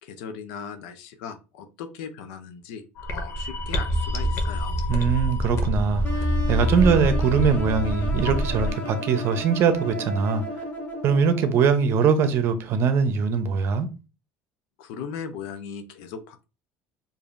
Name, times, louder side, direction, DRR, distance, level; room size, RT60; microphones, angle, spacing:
voice 1, 0.0-4.7 14.8-16.5, left 6 dB, 85° left, 0.6 m, -38 dB
sound 1, 3.0-8.7, equal, 55° left, 0.8 m, -26 dB
voice 2, 4.9-10.4 11.0-13.9, right 6 dB, 55° right, 0.7 m, -22 dB
sound 2, 6.0-11.9, equal, 40° left, 1.3 m, -34 dB
4.9 x 2.6 x 2.5 m
supercardioid pair, 105°, 5 cm